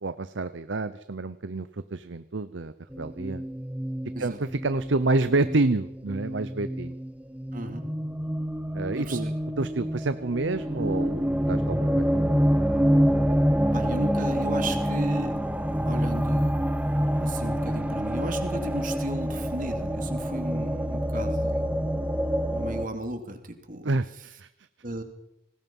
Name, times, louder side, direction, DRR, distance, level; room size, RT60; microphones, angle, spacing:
voice 1, 0.0-3.4 4.2-6.9 8.7-9.3 9.6-12.1 23.8-24.5, right 2 dB, 65° right, 13 dB, 0.7 m, -28 dB
sound 1, 2.9-22.9, equal, 5° right, 0.9 m, -27 dB
voice 2, 7.5-7.8 9.0-9.3 13.7-15.3 15.9-16.9 17.2-21.8 22.5-23.9 24.8-25.0, right 2 dB, 45° right, 6 dB, 2.8 m, -35 dB
25.5 x 19.5 x 5.5 m, 0.83 s
head